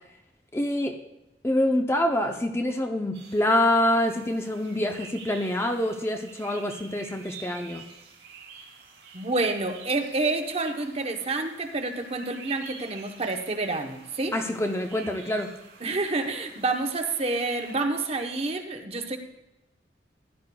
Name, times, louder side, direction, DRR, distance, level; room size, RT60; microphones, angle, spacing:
voice 1, 0.5-1.0 1.4-7.8 14.3-15.5, left 1 dB, 15° left, 4 dB, 0.6 m, -26 dB
sound 1, 3.1-17.8, right 5 dB, 75° right, 3.1 m, -48 dB
voice 2, 9.1-14.3 15.8-19.2, right 3 dB, 35° right, 5 dB, 0.9 m, -28 dB
15.5 x 11.0 x 2.3 m, 0.93 s
head